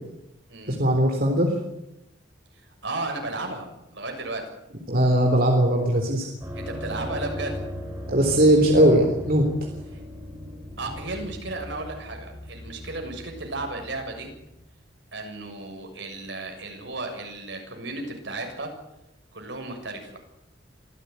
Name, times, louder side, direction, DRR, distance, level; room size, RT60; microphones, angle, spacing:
voice 1, 0.7-1.5 4.9-6.3 8.1-9.5, right 1 dB, 50° right, 2 dB, 3.7 m, -19 dB
voice 2, 2.5-4.5 6.5-7.6 9.9-10.0 10.8-14.3 15.1-18.7 19.3-20.2, right 2 dB, 70° right, 3 dB, 6.8 m, -34 dB
sound 1, 6.4-14.7, equal, 15° right, 7.7 m, -37 dB
26.0 x 16.0 x 9.6 m, 0.88 s
head